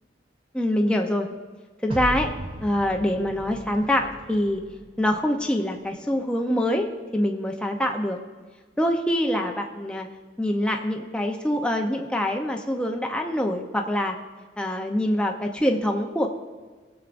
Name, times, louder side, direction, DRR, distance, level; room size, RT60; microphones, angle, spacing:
voice 1, 0.5-1.3 1.8-2.3 2.6-4.6 5.0-8.2 8.8-10.1 10.4-14.2 14.6-16.3, left 1 dB, 5° left, 2 dB, 0.7 m, -25 dB
sound 1, 1.9-5.2, right 1 dB, 30° right, 0.8 m, -36 dB
18.5 x 7.2 x 2.6 m, 1.4 s
head